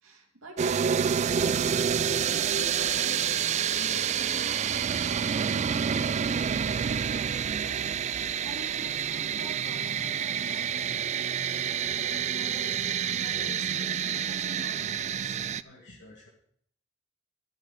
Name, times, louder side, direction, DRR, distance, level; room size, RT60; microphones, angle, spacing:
voice 1, 0.0-5.3 5.5-7.8 8.1-11.4 12.0-12.7 13.0-15.4, right 1 dB, 80° right, 0 dB, 2.6 m, -47 dB
sound 1, 0.6-15.6, right 8 dB, 35° right, 0.3 m, -28 dB
voice 2, 12.4-12.9 13.5-13.8 15.6-16.3, left 1 dB, 60° left, -3 dB, 1.8 m, -51 dB
12.0 x 5.8 x 7.2 m, 0.65 s
head